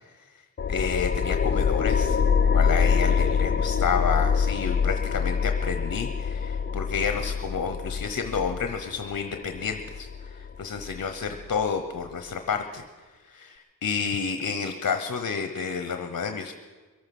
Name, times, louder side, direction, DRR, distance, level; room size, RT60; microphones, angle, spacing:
sound 1, 0.6-11.6, left 6 dB, 35° left, 0.5 m, -25 dB
voice 1, 0.7-2.2 2.5-12.8 13.2-16.5, left 6 dB, 65° left, 7 dB, 1.0 m, -30 dB
23.0 x 8.7 x 6.0 m, 1.4 s
wide cardioid pair, 75°, 34 cm